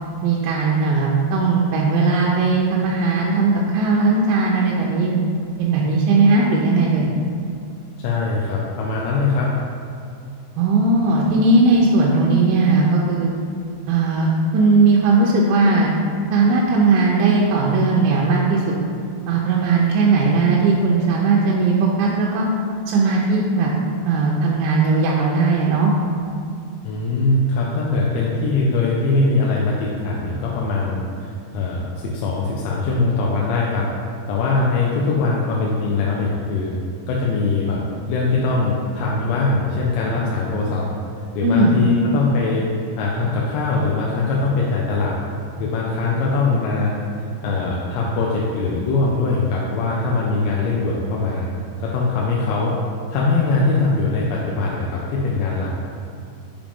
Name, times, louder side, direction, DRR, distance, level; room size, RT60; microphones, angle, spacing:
voice 1, 0.2-5.1 5.6-7.1 10.6-13.3 13.9-15.9 16.3-18.6 19.3-22.5 22.9-23.7 24.1-25.9 41.4-41.7, right 3 dB, 90° right, -3 dB, 3.0 m, -18 dB
voice 2, 8.0-9.5 26.8-33.9 34.3-36.7 37.1-37.8 38.1-40.9 41.4-42.7 43.0-45.1 45.6-46.9 47.4-51.5 51.8-52.8 53.1-55.7, left 3 dB, 85° left, -3 dB, 2.8 m, -21 dB
7.2 x 5.0 x 3.5 m, 2.4 s
omnidirectional pair, 5.2 m